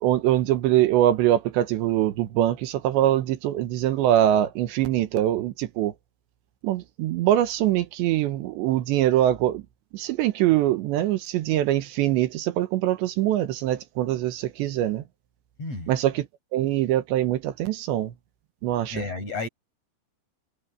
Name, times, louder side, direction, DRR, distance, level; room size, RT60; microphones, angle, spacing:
voice 1, 0.0-5.9 6.6-9.6 9.9-15.0 15.9-16.3 16.5-18.1 18.6-19.0, right 12 dB, 85° right, 3.5 m, -23 dB
voice 2, 15.6-15.9 18.9-19.5, left 3 dB, 35° left, 8.9 m, -32 dB
omnidirectional pair, 5.1 m